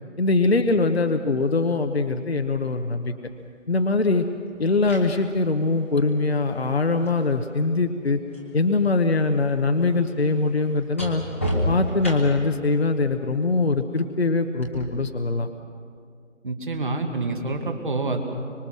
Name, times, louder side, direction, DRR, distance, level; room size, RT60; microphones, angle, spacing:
voice 1, 0.2-3.1 3.7-4.3 4.6-8.2 8.5-11.2 11.7-15.5, left 3 dB, 50° left, 6 dB, 1.0 m, -22 dB
sound 1, 3.3-3.4 4.5-8.5 8.8-12.6 14.6-14.8, equal, 10° left, 1.1 m, -33 dB
voice 2, 16.4-18.2, right 3 dB, 40° right, 4 dB, 2.0 m, -27 dB
25.5 x 23.5 x 6.2 m, 2.2 s
figure-of-eight pair, 170°, 39 cm